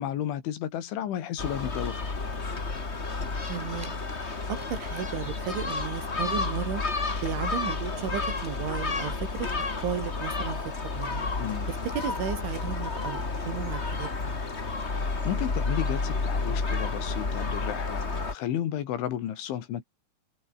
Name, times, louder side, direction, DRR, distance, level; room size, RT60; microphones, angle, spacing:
voice 1, 0.0-2.2 11.4-11.7 14.9-19.8, left 10 dB, 90° left, 4.9 m, -33 dB
Gull seagull, 1.4-18.3, left 3 dB, 30° left, 1.3 m, -31 dB
voice 2, 3.5-6.8 7.2-9.5 9.8-11.2 11.7-14.1, right 8 dB, 90° right, 6.1 m, -34 dB
omnidirectional pair, 5.3 m